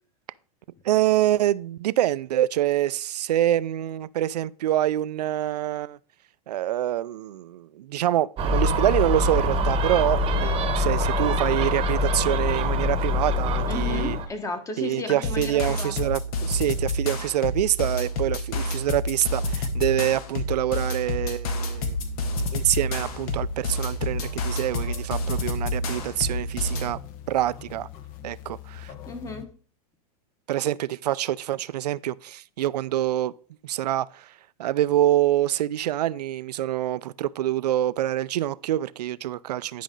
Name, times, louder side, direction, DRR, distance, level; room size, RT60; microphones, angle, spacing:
voice 1, 0.8-6.0 6.5-14.2 14.8-22.0 22.5-27.0 27.3-27.9 28.2-28.9 30.5-33.3 33.6-34.3 34.6-39.8, right 13 dB, 80° right, 0.4 m, -26 dB
Gull seagull, 8.4-14.3, left 1 dB, 25° right, 1.0 m, -24 dB
voice 2, 13.7-16.1 29.1-29.5, left 2 dB, 15° left, 1.3 m, -34 dB
sound 1, 15.2-26.9, left 1 dB, 65° left, 1.6 m, -29 dB
sound 2, 21.7-29.5, left 11 dB, 45° left, 1.0 m, -42 dB
10.0 x 5.2 x 3.8 m
hypercardioid pair, 120°, 20 cm